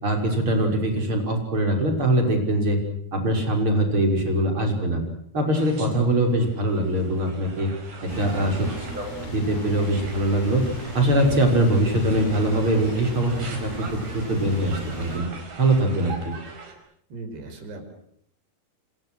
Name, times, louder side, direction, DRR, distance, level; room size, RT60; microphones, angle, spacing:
voice 1, 0.0-2.8 3.1-5.0 5.3-7.7 8.0-8.7 8.9-10.7 10.9-13.3 13.6-15.3 15.6-16.4, right 1 dB, 30° right, 3 dB, 6.5 m, -22 dB
sound 1, 5.5-16.7, right 4 dB, 70° right, 6.8 m, -41 dB
sound 2, 8.1-15.2, equal, 60° left, 8.8 m, -36 dB
voice 2, 17.1-17.9, right 2 dB, 85° right, 6 dB, 7.4 m, -39 dB
29.5 x 26.5 x 6.4 m, 0.69 s
omnidirectional pair, 4.6 m